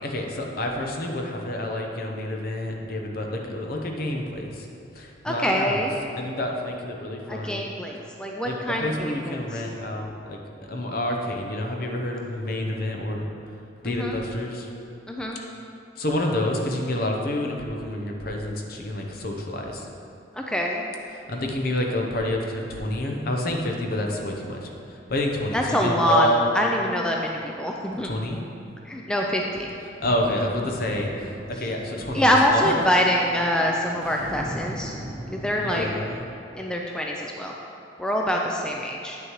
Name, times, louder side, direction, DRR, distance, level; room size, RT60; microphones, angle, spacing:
voice 1, 0.0-4.7 4.9-5.8 6.1-7.7 8.4-13.3 13.8-14.7 16.0-19.9 21.3-26.5 28.0-28.4 30.0-32.7 35.6-36.2, left 1 dB, 55° left, 1 dB, 0.8 m, -28 dB
voice 2, 5.2-5.9 7.3-9.6 13.8-14.2 15.1-15.4 20.3-20.8 25.5-28.1 28.9-29.7 32.1-34.9 35.3-35.9 36.5-37.5 38.0-39.2, equal, 5° left, -1 dB, 0.4 m, -25 dB
sound 1, 30.0-36.2, right 1 dB, 35° right, 0.8 m, -39 dB
8.8 x 6.5 x 3.1 m, 2.6 s
head